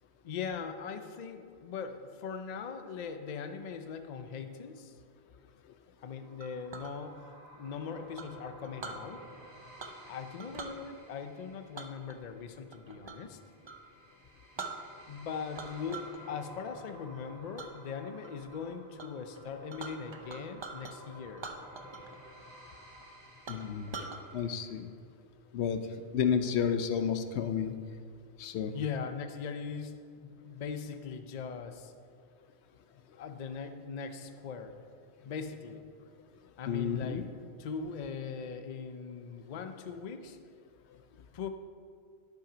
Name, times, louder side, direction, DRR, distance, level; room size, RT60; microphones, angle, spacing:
voice 1, 0.2-4.9 6.0-7.1 7.5-9.2 10.1-13.4 15.1-21.4 28.7-31.9 33.2-34.7 35.3-35.8 36.6-37.2 37.6-40.4 41.1-41.5, left 6 dB, 50° left, 8 dB, 0.6 m, -40 dB
sound 1, 6.1-24.8, right 1 dB, 65° right, 1.8 m, -54 dB
Chink clink, 6.4-6.9 8.2-9.0 9.8-10.1 10.4-10.8 11.7-13.3 13.6-13.8 14.2-14.3 14.6-15.2 15.5-16.2 16.6-16.9 17.6-17.7 18.2-18.6 19.0-19.1 19.3-20.9 21.3-22.2 22.4-22.5 23.0-23.1 23.5-24.2, right 4 dB, 35° right, 0.5 m, -43 dB
voice 2, 23.5-24.0 24.3-24.9 25.5-25.8 26.1-27.7 28.4-28.7 36.7-37.3, left 7 dB, 85° left, 9 dB, 0.9 m, -31 dB
10.5 x 5.7 x 5.0 m, 2.2 s
omnidirectional pair, 1.1 m